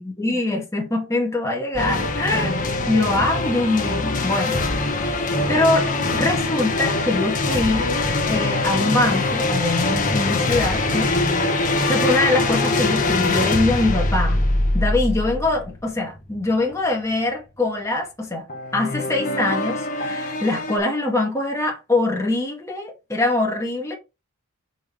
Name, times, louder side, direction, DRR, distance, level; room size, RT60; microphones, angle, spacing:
voice 1, 0.0-4.6 5.0-7.9 8.3-11.1 11.9-14.4 14.7-18.4 18.7-23.9, left 2 dB, 15° left, 1.9 m, -23 dB
sound 1, 1.7-16.7 18.5-20.8, left 2 dB, 40° left, 1.3 m, -23 dB
6.2 x 5.2 x 3.2 m
head